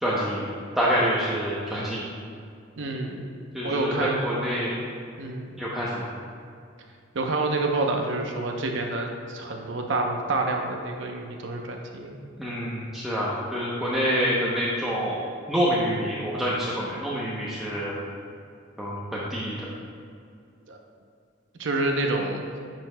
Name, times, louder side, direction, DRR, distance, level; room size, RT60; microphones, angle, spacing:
voice 1, 0.0-2.1 3.5-4.8 5.6-6.1 12.4-15.2 15.5-18.0 18.8-19.7, equal, ahead, -8 dB, 0.8 m, -27 dB
voice 2, 2.8-3.3 3.6-4.3 5.2-5.6 7.1-12.2 20.7-20.8 21.5-22.4, right 2 dB, 70° right, 2 dB, 0.7 m, -28 dB
10.5 x 6.1 x 2.2 m, 2.4 s
head